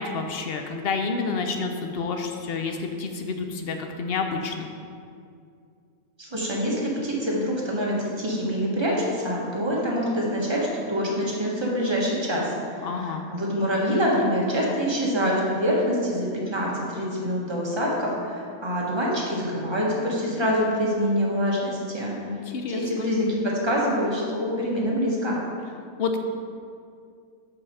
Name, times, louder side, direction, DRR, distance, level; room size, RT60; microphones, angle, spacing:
voice 1, 0.0-4.7 12.8-13.2 22.3-23.1 26.0-26.2, left 4 dB, 60° left, 5 dB, 0.6 m, -29 dB
voice 2, 6.2-22.1 22.7-25.4, equal, 20° right, -4 dB, 1.2 m, -25 dB
5.6 x 4.8 x 6.5 m, 2.4 s
omnidirectional pair, 1.5 m